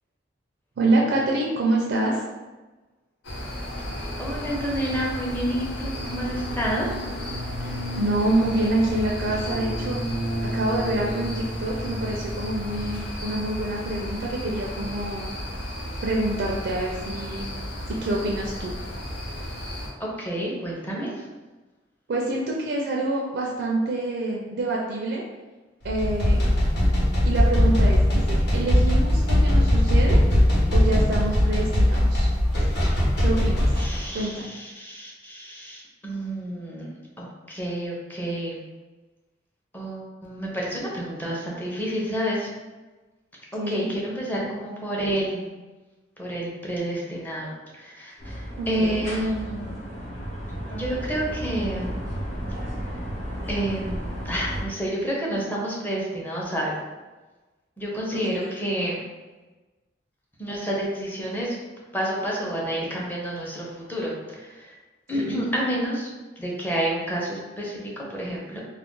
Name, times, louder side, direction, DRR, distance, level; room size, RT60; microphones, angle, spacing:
voice 1, 0.8-2.2 7.6-10.0 10.5-15.3 16.0-17.5 17.9-18.7 22.1-25.2 25.8-26.4 27.2-30.2 30.7-32.3 33.2-33.7 34.1-34.5 43.6-43.9 48.6-49.0 58.1-58.5 65.1-65.4, right 2 dB, 65° right, -2 dB, 0.4 m, -26 dB
sound 1, 3.2-19.9, equal, 85° left, 0.6 m, -32 dB
voice 2, 4.2-6.9 20.0-21.2 33.8-36.9 37.2-38.6 39.7-42.5 43.7-45.5 46.2-49.6 50.7-52.0 53.5-56.8 57.8-59.0 60.4-61.6 61.9-64.7 65.1-66.1 66.4-68.6, right 1 dB, 10° left, -4 dB, 0.6 m, -29 dB
sound 2, 25.8-34.0, left 1 dB, 65° left, 1.0 m, -20 dB
sound 3, 48.2-54.6, equal, 40° left, 0.8 m, -33 dB
2.4 x 2.2 x 3.7 m, 1.2 s
head